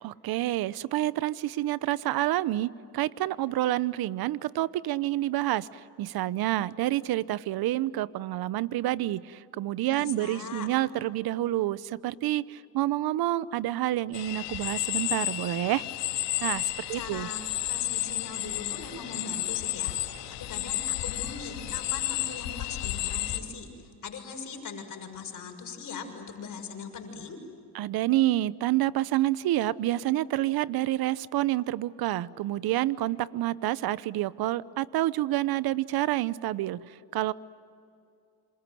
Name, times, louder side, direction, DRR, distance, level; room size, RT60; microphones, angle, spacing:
voice 1, 0.0-15.8 16.4-17.3 27.7-37.3, right 15 dB, 60° right, 18 dB, 0.9 m, -28 dB
voice 2, 9.9-10.7 16.9-27.4, left 5 dB, 45° left, 4 dB, 6.6 m, -40 dB
sound 1, 14.1-23.4, left 15 dB, 75° left, 2.6 m, -32 dB
28.0 x 27.0 x 7.8 m, 2.6 s
supercardioid pair, 85°, 43 cm